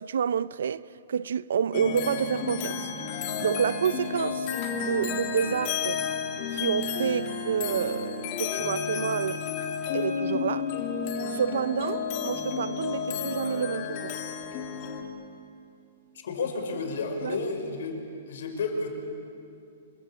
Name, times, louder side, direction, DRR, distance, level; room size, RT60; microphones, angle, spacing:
voice 1, 0.0-2.9 3.4-4.5 4.8-6.0 6.5-9.4 9.9-10.7 11.3-14.1 17.2-17.4, right 7 dB, 80° right, 0.7 m, -29 dB
sound 1, 1.7-15.0, left 6 dB, 35° left, 2.3 m, -31 dB
voice 2, 16.2-18.0 18.3-18.9, left 4 dB, 65° left, 5.6 m, -31 dB
28.5 x 22.5 x 8.8 m
hypercardioid pair, 170°, 0 cm